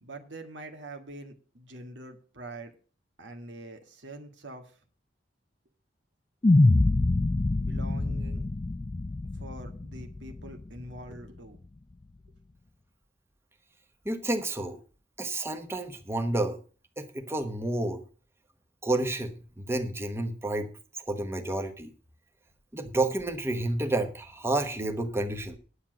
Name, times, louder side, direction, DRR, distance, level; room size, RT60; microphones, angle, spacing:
voice 1, 0.0-2.7 3.2-4.7 7.6-8.5 9.3-11.6, right 1 dB, 85° right, 4 dB, 1.9 m, -44 dB
sound 1, 6.4-10.8, left 2 dB, 25° left, 0.4 m, -25 dB
voice 2, 14.0-14.8 15.2-16.6 17.0-18.0 18.8-20.7 21.1-21.9 22.7-25.6, right 2 dB, 15° right, 6 dB, 1.1 m, -30 dB
10.0 x 7.3 x 6.2 m, 0.38 s
head